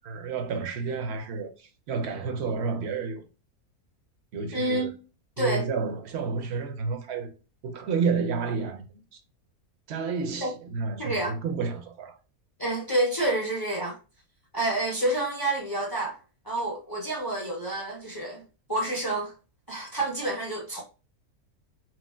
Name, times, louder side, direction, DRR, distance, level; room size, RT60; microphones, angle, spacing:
voice 1, 0.0-3.2 4.3-4.9 5.4-7.3 7.6-8.8 9.1-9.2 9.9-12.2, right 5 dB, 65° right, 0.7 m, -30 dB
voice 2, 4.5-4.9 5.4-5.7 10.4-10.5 11.0-11.4 12.6-14.0 14.5-16.2 16.4-18.4 18.7-19.3 19.7-20.8, right 1 dB, 25° left, 0.5 m, -28 dB
3.1 x 2.8 x 2.2 m
omnidirectional pair, 1.6 m